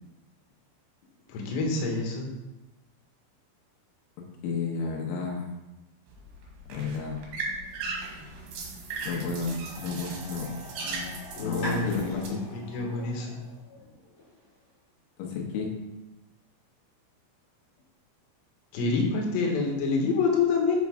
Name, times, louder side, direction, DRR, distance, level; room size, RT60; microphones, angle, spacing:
voice 1, 1.3-2.3 11.3-11.9 12.3-13.4 18.7-20.8, left 4 dB, 65° left, 0 dB, 2.5 m, -27 dB
voice 2, 4.4-5.5 6.7-7.2 9.0-10.5 10.8-11.1 11.4-12.4 15.2-15.7, left 4 dB, 90° left, 0 dB, 3.9 m, -31 dB
sound 1, 6.1-12.3, right 3 dB, 70° right, 3.2 m, -38 dB
sound 2, 9.6-14.6, equal, 50° left, 1.0 m, -43 dB
8.0 x 5.3 x 3.6 m, 1.0 s
omnidirectional pair, 5.9 m